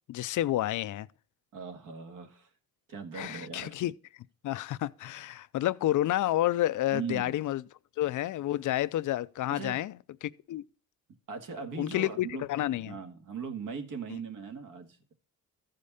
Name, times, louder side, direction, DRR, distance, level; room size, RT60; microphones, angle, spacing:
voice 1, 0.1-1.1 3.2-3.9 4.4-7.6 8.0-9.9 10.2-10.6 11.8-13.0, left 14 dB, 60° left, 0.5 m, -30 dB
voice 2, 1.5-2.5 2.9-3.8 6.9-7.4 9.5-9.8 11.3-12.4 12.8-15.1, right 5 dB, 65° right, 2.0 m, -39 dB
14.5 x 5.1 x 4.1 m
cardioid pair, 110°, 34 cm